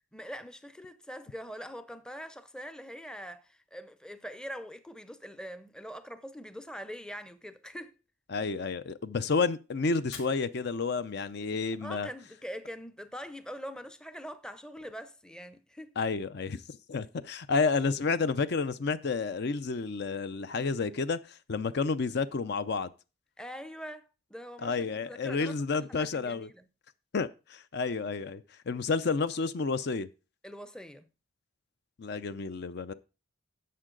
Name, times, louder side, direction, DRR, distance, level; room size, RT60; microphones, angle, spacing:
voice 1, 0.1-8.0 11.8-16.0 23.4-26.7 30.4-31.1, equal, 5° left, 0.6 m, -43 dB
voice 2, 8.3-12.1 16.0-16.6 16.9-22.9 24.6-26.5 27.1-30.1 32.0-32.9, left 4 dB, 55° left, 0.5 m, -30 dB
Fire, 10.0-12.0, left 6 dB, 80° left, 2.1 m, -52 dB
11.0 x 7.4 x 3.8 m
head